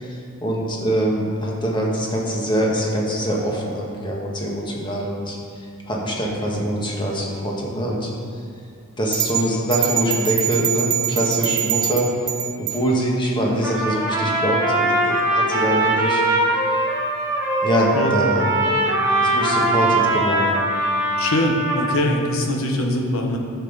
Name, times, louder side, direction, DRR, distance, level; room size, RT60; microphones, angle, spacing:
voice 1, 0.0-8.1 9.0-12.1 12.6-16.2 16.5-16.8 17.6-18.5 19.2-20.5, equal, 20° left, -3 dB, 1.6 m, -24 dB
sound 1, 9.1-12.8, right 12 dB, 80° right, 1.1 m, -24 dB
Trumpet, 13.6-22.0, right 1 dB, 10° right, 2.0 m, -21 dB
voice 2, 21.2-23.4, left 1 dB, 65° left, 2 dB, 1.3 m, -22 dB
11.0 x 7.1 x 4.1 m, 2.3 s
head